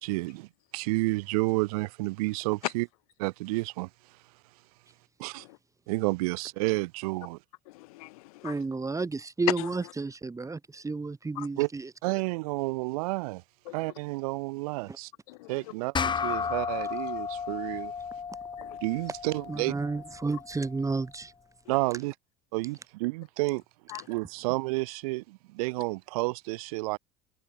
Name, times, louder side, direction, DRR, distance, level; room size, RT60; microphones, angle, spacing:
voice 1, 0.0-2.9 3.2-3.9 5.2-5.4 5.9-7.4 11.6-11.7 12.0-13.4 13.7-15.1 15.5-17.9 18.8-19.7 21.7-22.1 22.5-23.6 24.1-27.0, right 24 dB, 85° right, 2.5 m, -30 dB
voice 2, 7.7-8.5 9.6-9.7 11.4-11.5 13.7-13.8 15.3-15.5 18.6-18.8 23.9-24.0, left 21 dB, 90° left, 1.8 m, -42 dB
voice 3, 8.4-11.9 14.9-15.0 19.5-21.3, right 3 dB, 15° right, 4.6 m, -32 dB
sound 1, 15.9-20.7, left 6 dB, 25° left, 1.2 m, -34 dB
supercardioid pair, 100°, 18 cm